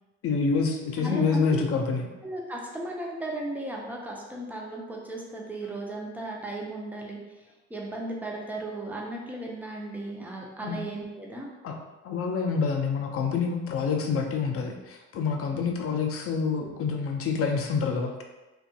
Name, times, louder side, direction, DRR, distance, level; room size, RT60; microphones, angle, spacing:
voice 1, 0.2-2.1 10.6-10.8 11.6-11.8 12.0-18.2, left 5 dB, 40° left, 2 dB, 0.5 m, -27 dB
voice 2, 1.0-1.4 2.2-7.2 7.7-11.5, right 2 dB, 5° right, -2 dB, 0.6 m, -36 dB
2.6 x 2.5 x 2.3 m, 1.1 s
hypercardioid pair, 60°, 34 cm